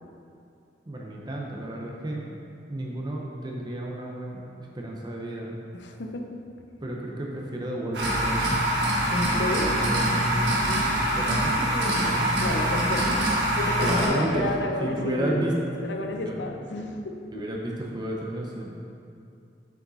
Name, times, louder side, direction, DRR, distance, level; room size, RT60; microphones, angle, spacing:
voice 1, 0.9-2.2 2.7-4.5 4.7-5.6 6.8-12.3 13.8-14.4 14.8-15.5 16.2-16.5 17.3-18.9, right 1 dB, 25° right, -2 dB, 0.6 m, -32 dB
voice 2, 5.7-6.4 9.1-9.7 12.4-15.5 15.8-17.4, left 1 dB, 85° left, 3 dB, 0.6 m, -31 dB
sound 1, 7.9-14.1, right 1 dB, 75° right, 1.4 m, -24 dB
6.7 x 5.1 x 4.0 m, 2.6 s
head